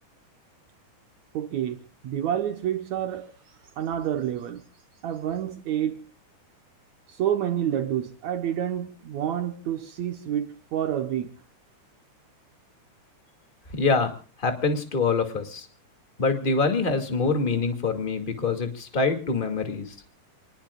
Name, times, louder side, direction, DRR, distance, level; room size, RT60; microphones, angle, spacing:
voice 1, 1.3-3.3 3.8-4.6 5.0-6.0 7.1-11.3, right 10 dB, 70° right, 2.2 m, -28 dB
voice 2, 13.7-14.1 14.4-15.7 16.2-19.9, left 4 dB, 20° left, 2.1 m, -25 dB
29.0 x 20.0 x 2.4 m
omnidirectional pair, 3.6 m